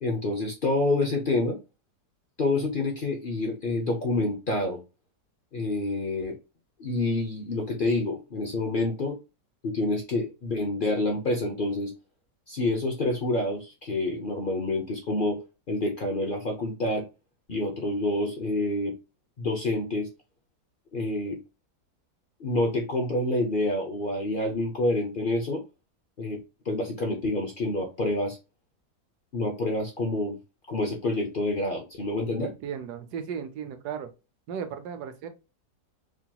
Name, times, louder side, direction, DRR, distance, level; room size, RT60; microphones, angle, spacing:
voice 1, 0.0-1.6 2.4-4.8 5.5-6.4 6.8-9.2 9.6-11.9 12.5-15.4 15.7-17.1 17.5-18.9 19.4-20.1 20.9-21.4 22.4-25.6 26.2-26.4 26.6-28.4 29.3-30.4 30.7-32.5, left 2 dB, 50° left, 0.6 m, -27 dB
voice 2, 32.4-34.1 34.5-35.3, right 7 dB, 80° right, 1.3 m, -35 dB
4.8 x 2.9 x 2.2 m
omnidirectional pair, 1.7 m